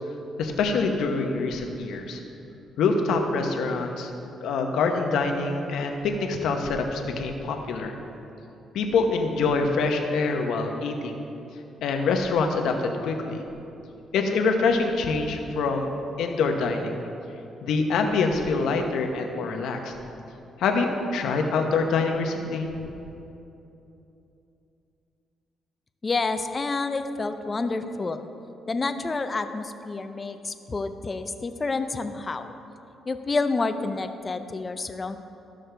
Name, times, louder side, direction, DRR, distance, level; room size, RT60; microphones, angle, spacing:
voice 1, 0.4-2.2 2.8-7.9 8.7-11.2 11.8-13.4 14.1-15.9 16.2-17.0 17.6-19.9 20.6-22.7, left 4 dB, 80° left, 3 dB, 0.9 m, -25 dB
voice 2, 26.0-28.3 28.7-32.5 33.1-35.2, left 3 dB, 30° left, 9 dB, 0.5 m, -29 dB
14.0 x 6.3 x 3.4 m, 2.9 s
cardioid pair, 90°, 0 cm